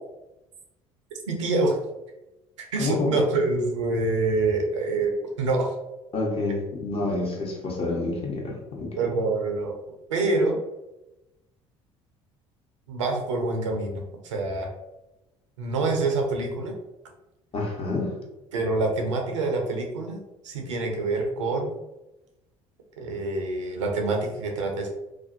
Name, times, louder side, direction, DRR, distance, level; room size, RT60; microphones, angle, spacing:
voice 1, 1.3-1.8 2.6-5.7 9.0-9.7 10.1-10.6 12.9-14.7 15.6-16.7 18.5-21.7 23.0-24.9, right 3 dB, 85° right, 2 dB, 0.5 m, -26 dB
voice 2, 2.8-3.2 6.1-8.9 17.5-18.1, left 3 dB, 40° left, -1 dB, 0.9 m, -28 dB
2.5 x 2.2 x 2.5 m, 0.96 s
hypercardioid pair, 60°, 15 cm